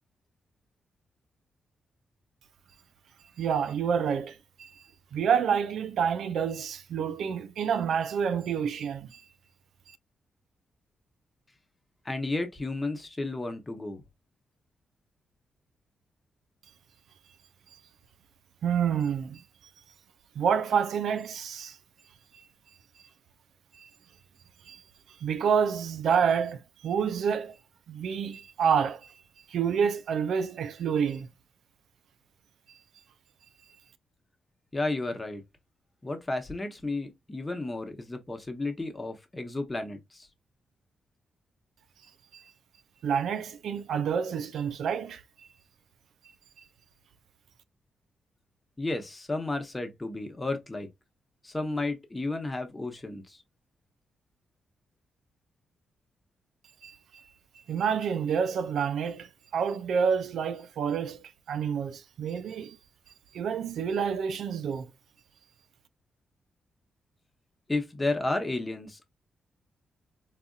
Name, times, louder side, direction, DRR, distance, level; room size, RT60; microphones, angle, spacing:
voice 1, 3.4-4.7 5.1-9.2 18.6-19.4 20.4-21.8 23.8-23.9 24.7-24.8 25.1-27.6 27.9-29.1 29.5-31.3 42.3-42.4 43.0-45.2 56.8-56.9 57.7-62.8 63.3-64.9, right 7 dB, 80° right, 0.4 m, -28 dB
voice 2, 12.0-14.0 34.7-35.4 36.0-40.3 48.8-50.9 51.4-53.4 67.7-69.0, left 2 dB, 15° left, 0.9 m, -32 dB
4.1 x 2.5 x 2.3 m
cardioid pair, 120°, 0 cm